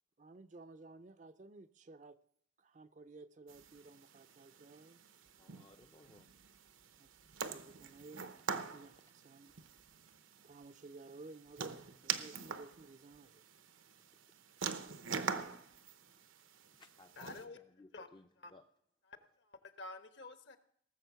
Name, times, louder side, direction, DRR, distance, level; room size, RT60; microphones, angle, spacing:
voice 1, 0.2-2.2 2.6-5.0 7.0-7.1 7.4-8.3 8.7-9.5 10.4-13.4, right 3 dB, 40° right, 0.5 m, -55 dB
sound 1, 3.5-17.4, right 6 dB, 85° right, 0.9 m, -45 dB
voice 2, 5.4-6.3 7.0-7.1 15.2-15.6 16.1-16.2 16.7-18.7, left 2 dB, 25° left, 0.4 m, -62 dB
voice 3, 17.2-17.6 17.9-18.1 18.4-18.5 19.1-20.6, left 3 dB, 60° left, 1.1 m, -50 dB
18.0 x 7.0 x 6.9 m
head